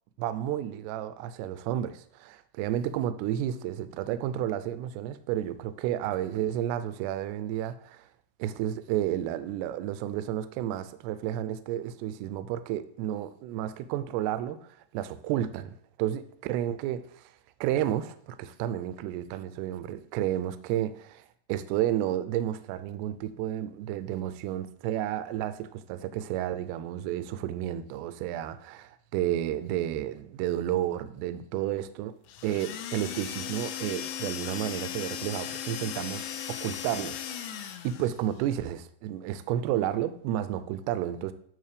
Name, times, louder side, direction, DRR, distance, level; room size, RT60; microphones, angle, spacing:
voice 1, 0.2-8.0 8.4-14.6 14.9-15.7 16.0-17.0 17.6-21.2 21.5-32.1 32.4-36.2 36.5-41.3, right 12 dB, 85° right, 2.4 m, -31 dB
sound 1, 32.3-38.2, left 10 dB, 80° left, 2.8 m, -37 dB
9.4 x 3.2 x 6.7 m
omnidirectional pair, 5.2 m